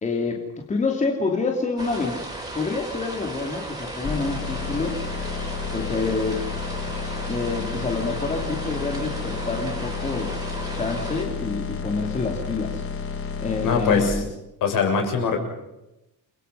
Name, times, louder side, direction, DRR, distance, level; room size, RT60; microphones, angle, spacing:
voice 1, 0.0-2.2 2.5-5.0 5.7-6.4 7.3-10.4 10.7-12.8 13.4-14.3, left 3 dB, 20° left, 2 dB, 2.6 m, -27 dB
sound 1, 1.8-11.2, right 1 dB, 10° right, 6.2 m, -35 dB
sound 2, 4.0-14.1, left 5 dB, 35° left, 3.5 m, -31 dB
voice 2, 13.6-14.2 14.6-15.4, left 5 dB, 55° left, 4 dB, 6.5 m, -22 dB
30.0 x 23.0 x 5.6 m, 0.92 s
cardioid pair, 180°, 38 cm